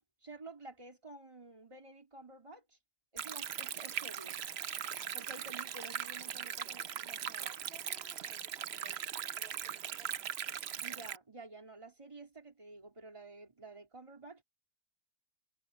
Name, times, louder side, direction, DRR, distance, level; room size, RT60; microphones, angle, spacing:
voice 1, 0.0-2.8 3.1-4.4 5.1-7.5 10.8-14.4, right 2 dB, 15° right, 3.1 m, -51 dB
Stream, 3.2-11.2, right 9 dB, 60° right, 0.7 m, -40 dB
voice 2, 6.5-6.9 7.3-10.3, right 1 dB, 35° right, 5.5 m, -61 dB
omnidirectional pair, 1.8 m